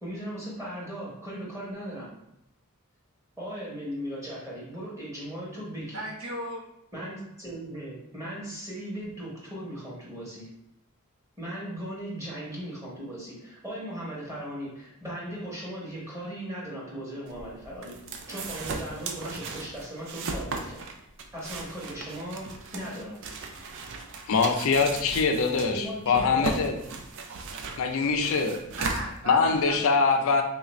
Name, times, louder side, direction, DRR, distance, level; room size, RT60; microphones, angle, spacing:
voice 1, 0.0-2.1 3.4-6.0 6.9-10.5 11.4-18.0 18.3-20.9 21.3-23.2 25.7-26.6, equal, 15° right, -6 dB, 1.0 m, -38 dB
voice 2, 5.9-6.6 28.7-30.4, right 1 dB, 75° right, -2 dB, 0.9 m, -37 dB
sound 1, 17.3-29.8, right 4 dB, 60° right, 0.4 m, -37 dB
voice 3, 24.3-26.8 27.8-28.6 29.3-30.4, left 4 dB, 65° left, 5 dB, 0.4 m, -23 dB
3.3 x 2.5 x 3.0 m, 0.81 s
head